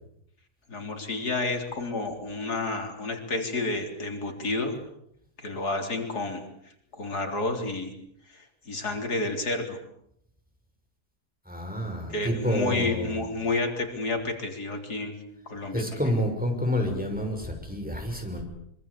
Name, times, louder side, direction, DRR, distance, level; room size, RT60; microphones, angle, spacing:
voice 1, 0.7-4.8 5.4-6.4 6.9-7.9 8.3-9.8 12.1-15.2 15.5-16.0, left 2 dB, 90° left, 4 dB, 4.3 m, -30 dB
voice 2, 11.5-13.2 15.7-18.4, equal, 5° right, 2 dB, 6.2 m, -29 dB
25.5 x 24.0 x 8.5 m, 0.74 s
omnidirectional pair, 1.6 m